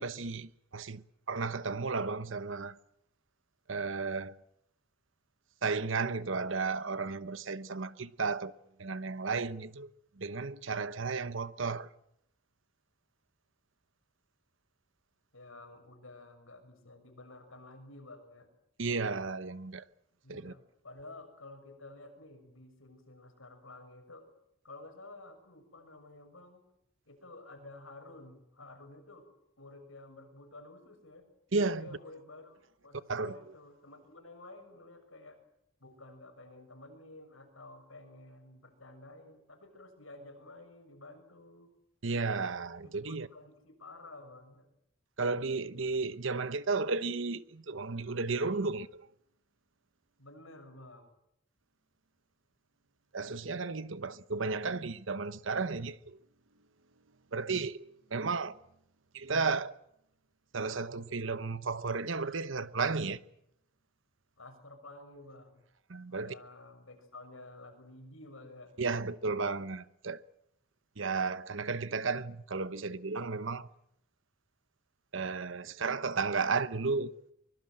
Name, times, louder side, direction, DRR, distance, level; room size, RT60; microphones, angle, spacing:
voice 1, 0.0-2.8 3.7-4.4 5.6-8.5 8.8-9.9 10.2-11.9 18.8-19.8 20.3-20.5 31.5-31.9 33.1-33.3 42.0-43.3 45.2-49.1 53.1-56.2 57.3-58.6 59.1-59.8 60.5-63.2 65.9-66.3 68.8-70.2 71.0-73.7 75.1-77.1, right 4 dB, 65° right, 1.0 m, -33 dB
voice 2, 15.3-18.5 20.2-24.3 24.6-26.6 27.1-31.3 31.8-35.4 35.8-41.7 42.8-44.7 50.2-51.1 64.4-65.6 66.1-68.7, left 2 dB, 80° left, 6.3 m, -51 dB
24.0 x 22.0 x 7.7 m
head